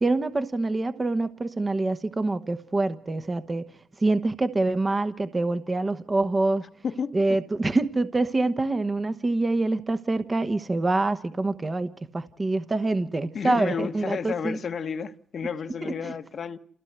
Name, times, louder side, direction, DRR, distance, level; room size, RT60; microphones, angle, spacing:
voice 1, 0.0-3.7 4.0-6.7 7.1-14.6 15.8-16.1, right 2 dB, 25° right, 1.1 m, -26 dB
voice 2, 6.8-7.4 13.3-16.6, left 6 dB, 50° left, 1.3 m, -31 dB
28.0 x 15.5 x 8.1 m
cardioid pair, 90°, 0 cm